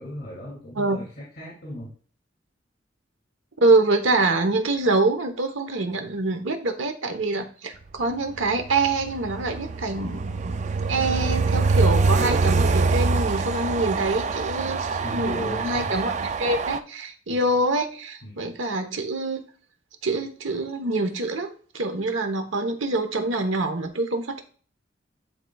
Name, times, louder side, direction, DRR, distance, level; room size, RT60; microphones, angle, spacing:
voice 1, 0.0-1.9 15.0-16.0 17.3-17.5 18.2-18.4, equal, 55° left, -6 dB, 2.7 m, -36 dB
voice 2, 3.6-10.6 10.9-19.4 20.0-24.4, right 2 dB, 85° right, 6 dB, 1.1 m, -25 dB
Train, 8.4-16.8, right 4 dB, 40° right, 0.4 m, -24 dB
11.0 x 3.9 x 2.4 m, 0.42 s
head